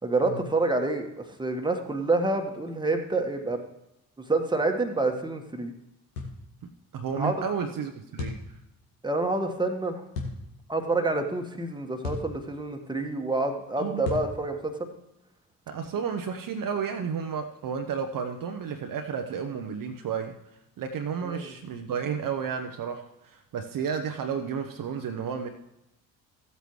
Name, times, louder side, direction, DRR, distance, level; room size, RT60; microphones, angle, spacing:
voice 1, 0.0-3.6 4.3-5.7 7.2-7.3 9.0-10.0 10.7-14.9 21.2-21.5, right 2 dB, 10° right, 4 dB, 1.5 m, -28 dB
sound 1, 6.2-6.4 8.2-8.5 10.1-10.4 12.0-12.3 14.0-14.3, left 3 dB, 80° left, 1.4 m, -33 dB
voice 2, 6.9-8.6 13.8-14.1 15.7-20.4 20.8-25.5, right 6 dB, 45° right, 5 dB, 0.9 m, -32 dB
15.0 x 8.2 x 3.1 m, 0.90 s
figure-of-eight pair, 40°, 46 cm